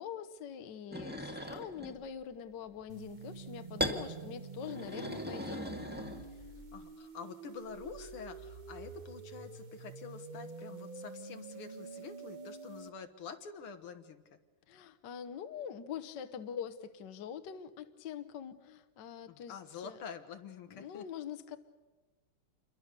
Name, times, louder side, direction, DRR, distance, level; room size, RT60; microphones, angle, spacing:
voice 1, 0.0-5.6 6.3-6.4 14.7-20.0 20.7-21.6, left 8 dB, 60° left, 9 dB, 1.5 m, -44 dB
sound 1, 0.9-2.0 3.8-4.0 4.6-6.5, equal, 5° right, 1.7 m, -38 dB
sound 2, 2.9-12.9, right 4 dB, 35° right, 0.7 m, -47 dB
voice 2, 6.7-14.4 19.3-21.1, left 6 dB, 80° left, 8 dB, 2.3 m, -47 dB
28.0 x 23.0 x 6.8 m, 1.2 s
omnidirectional pair, 2.4 m